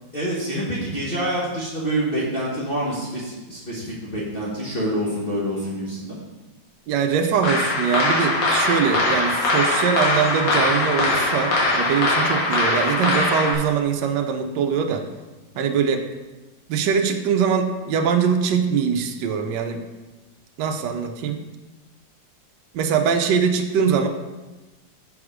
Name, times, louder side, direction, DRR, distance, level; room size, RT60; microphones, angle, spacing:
voice 1, 0.1-6.2 15.5-15.6, right 1 dB, 35° left, -9 dB, 1.2 m, -27 dB
voice 2, 6.9-15.0 15.6-16.0 16.7-19.8 20.6-21.4 22.7-24.1, right 6 dB, 75° right, 5 dB, 1.2 m, -22 dB
sound 1, 7.4-13.5, left 2 dB, 55° left, 1.2 m, -21 dB
6.2 x 4.8 x 4.9 m, 1.2 s
omnidirectional pair, 2.0 m